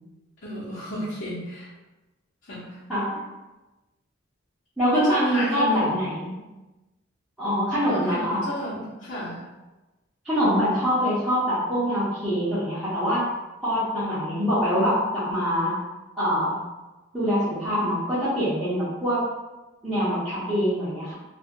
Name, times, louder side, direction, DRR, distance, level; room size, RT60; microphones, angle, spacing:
voice 1, 0.4-1.7 2.5-2.7 4.9-6.1 7.9-9.4, equal, 60° left, -13 dB, 1.0 m, -31 dB
voice 2, 4.8-6.4 7.4-8.4 10.2-13.3 13.6-15.7 16.1-16.6 17.1-19.3 19.8-21.1, equal, 5° right, -16 dB, 0.8 m, -24 dB
2.7 x 2.5 x 2.9 m, 1.1 s
head